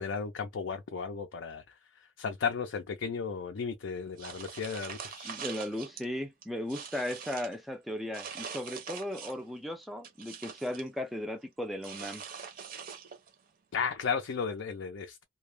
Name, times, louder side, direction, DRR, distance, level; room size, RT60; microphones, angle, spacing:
voice 1, 0.0-1.7 2.2-5.3 13.7-15.2, left 5 dB, 75° left, 0.4 m, -34 dB
sound 1, 4.2-6.0 6.4-7.6 8.1-9.5 9.8-10.9 11.8-13.3, right 6 dB, 45° right, 0.6 m, -43 dB
voice 2, 5.2-12.2, left 1 dB, ahead, 0.3 m, -36 dB
2.2 x 2.0 x 3.1 m
head